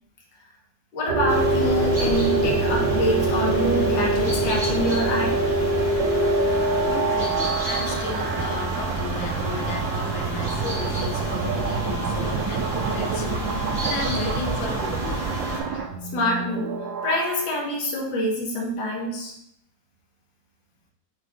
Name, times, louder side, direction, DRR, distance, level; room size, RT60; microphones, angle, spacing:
voice 1, 0.9-5.4 15.7-15.8 16.1-16.7 17.0-19.3, equal, 70° left, -2 dB, 1.7 m, -26 dB
sound 1, 1.1-17.5, right 3 dB, 75° right, 1.3 m, -25 dB
sound 2, 1.3-15.6, right 2 dB, 20° right, 1.3 m, -31 dB
voice 2, 6.9-15.2, left 5 dB, 90° left, 4 dB, 1.5 m, -35 dB
5.7 x 2.5 x 3.6 m, 0.73 s
omnidirectional pair, 2.1 m